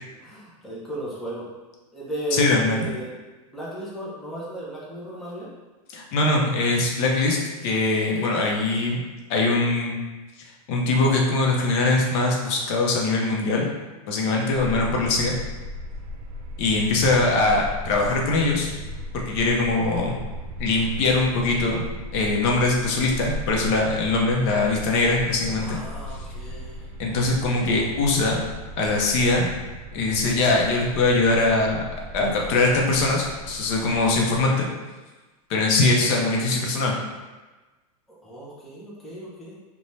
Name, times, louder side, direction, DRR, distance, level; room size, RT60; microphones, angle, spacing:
voice 1, 0.2-1.5 1.9-3.1 3.5-5.5 8.2-8.5 25.6-26.8 38.2-39.6, right 1 dB, ahead, -8 dB, 0.5 m, -35 dB
voice 2, 2.3-2.8 5.9-7.4 7.6-9.0 9.3-10.0 10.7-13.7 14.1-15.4 16.6-18.7 19.1-20.2 20.6-21.8 22.1-25.8 27.0-28.4 28.8-29.5 29.9-31.8 32.1-34.7 35.5-36.9, left 2 dB, 50° left, -1 dB, 0.6 m, -22 dB
sound 1, 14.5-34.4, equal, 85° right, 0.4 m, -37 dB
2.6 x 2.2 x 3.1 m, 1.2 s
supercardioid pair, 140°, 19 cm